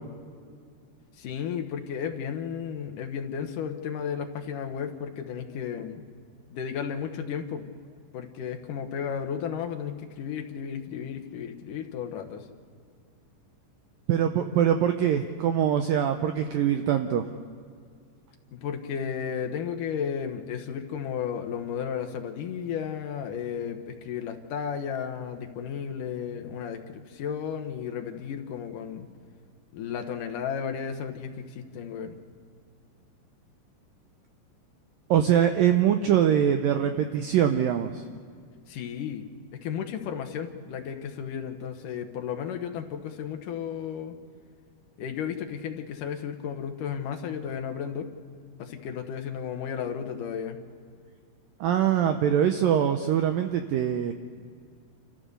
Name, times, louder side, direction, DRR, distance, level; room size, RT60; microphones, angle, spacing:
voice 1, 1.2-6.1 6.5-7.6 8.1-12.4 18.5-29.1 29.7-32.2 38.7-39.3 39.5-44.1 45.0-48.1 48.6-50.6, left 7 dB, 65° left, 4 dB, 2.2 m, -33 dB
voice 2, 14.1-17.3 35.1-38.0 51.6-54.1, right 9 dB, 85° right, 6 dB, 2.0 m, -23 dB
28.5 x 14.5 x 6.8 m, 2.1 s
omnidirectional pair, 5.0 m